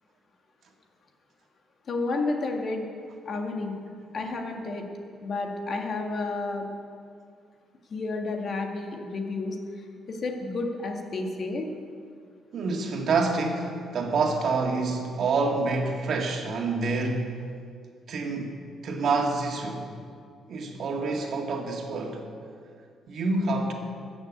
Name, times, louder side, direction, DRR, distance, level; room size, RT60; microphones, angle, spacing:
voice 1, 1.9-2.9 3.3-3.7 4.1-4.8 5.2-6.6 7.9-11.7, left 3 dB, 50° left, 2 dB, 1.9 m, -31 dB
voice 2, 12.5-17.4 18.1-19.9 20.5-22.2 23.1-23.7, right 3 dB, 60° right, 2 dB, 2.0 m, -27 dB
13.5 x 7.2 x 8.3 m, 2.2 s
cardioid pair, 90°, 0 cm